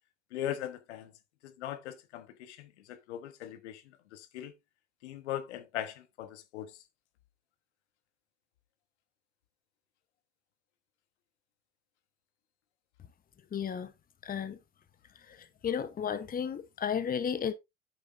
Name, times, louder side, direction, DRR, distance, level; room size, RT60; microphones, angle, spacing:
voice 1, 0.3-1.1 1.4-3.8 4.1-4.5 5.0-6.8, left 11 dB, 80° left, 1.1 m, -39 dB
voice 2, 13.5-13.9 14.2-14.6 15.6-17.5, left 8 dB, 25° left, 0.9 m, -33 dB
8.9 x 7.0 x 2.6 m
hypercardioid pair, 80°, 34 cm